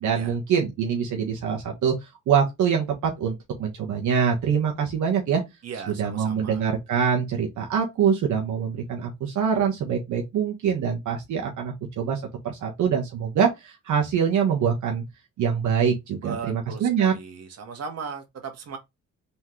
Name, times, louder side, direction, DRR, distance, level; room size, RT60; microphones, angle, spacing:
voice 1, 0.0-1.9 2.3-5.4 6.0-15.0 15.4-17.1, right 7 dB, 75° right, 1.4 m, -24 dB
voice 2, 5.6-6.7 16.2-18.8, right 5 dB, 55° right, 1.7 m, -37 dB
4.2 x 3.7 x 3.1 m
cardioid pair, 90°, 30 cm